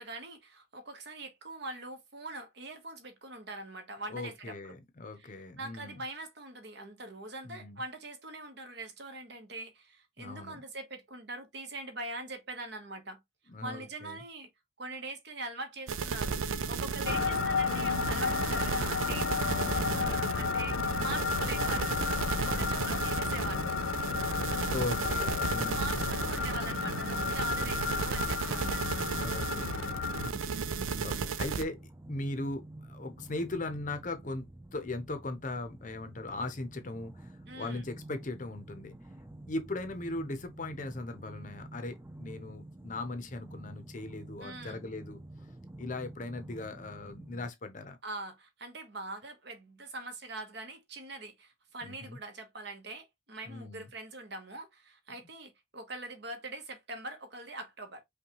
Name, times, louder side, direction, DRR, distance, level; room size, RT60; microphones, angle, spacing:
voice 1, 0.0-4.7 5.2-5.3 5.6-13.2 13.6-14.5 14.8-23.7 25.5-29.2 37.5-37.8 44.4-44.8 48.0-58.0, right 2 dB, 55° right, 1.0 m, -43 dB
voice 2, 4.1-6.0 7.4-7.8 10.2-10.6 13.5-14.2 17.1-17.5 19.4-20.0 22.3-22.8 24.7-26.1 29.0-30.7 31.0-39.0 39.5-45.2 45.8-48.0 51.8-52.2 53.5-53.9, left 2 dB, 40° left, 0.7 m, -39 dB
sound 1, 15.9-31.6, right 5 dB, 85° right, 0.5 m, -34 dB
sound 2, 17.0-30.3, left 6 dB, 90° left, 0.4 m, -33 dB
sound 3, 27.9-47.5, right 1 dB, 10° right, 0.3 m, -50 dB
5.3 x 2.3 x 2.9 m
head